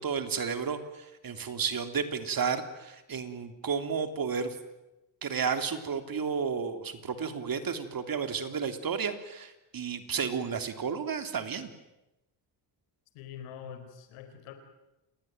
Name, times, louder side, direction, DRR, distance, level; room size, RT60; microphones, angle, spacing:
voice 1, 0.0-4.6 5.2-11.7, right 6 dB, 45° right, 8 dB, 3.4 m, -32 dB
voice 2, 13.1-14.5, left 8 dB, 90° left, 8 dB, 4.4 m, -44 dB
28.5 x 20.5 x 9.2 m, 0.96 s
supercardioid pair, 85°, 49 cm